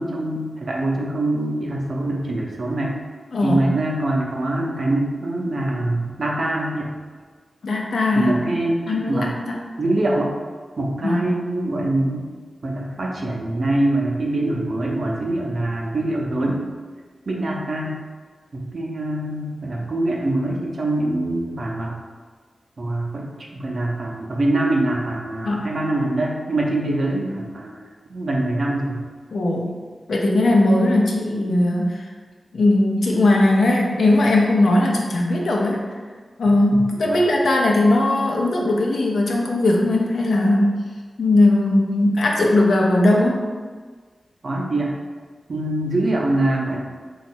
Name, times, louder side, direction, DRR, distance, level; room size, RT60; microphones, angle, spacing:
voice 1, 0.0-3.0 3.4-6.9 8.1-9.4 9.8-10.3 10.8-12.3 12.6-16.6 17.3-18.0 18.5-22.0 22.8-27.7 28.1-29.0 37.1-37.3 44.4-44.9 45.5-46.8, right 1 dB, 65° right, -1 dB, 0.6 m, -24 dB
voice 2, 7.6-8.5 8.9-9.6 11.0-11.2 25.4-25.7 29.3-29.7 30.1-32.1 32.5-35.9 36.4-40.8 41.2-43.5, left 2 dB, 80° left, -1 dB, 0.6 m, -19 dB
3.1 x 2.3 x 4.3 m, 1.5 s
cardioid pair, 40°, 0 cm